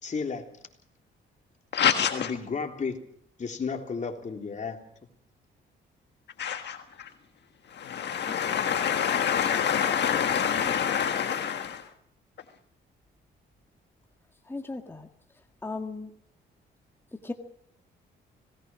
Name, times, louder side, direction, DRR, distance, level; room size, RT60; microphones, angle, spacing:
voice 1, 0.0-0.5 2.1-3.0 3.4-4.8, left 5 dB, 40° left, 3 dB, 3.4 m, -32 dB
voice 2, 1.7-2.3 6.4-7.1 7.7-11.9, left 8 dB, 60° left, 6 dB, 1.6 m, -26 dB
voice 3, 14.4-15.1 15.6-16.1 17.2-17.3, left 3 dB, 10° left, 4 dB, 1.8 m, -36 dB
26.0 x 18.5 x 6.2 m, 0.68 s
cardioid pair, 90°, 20 cm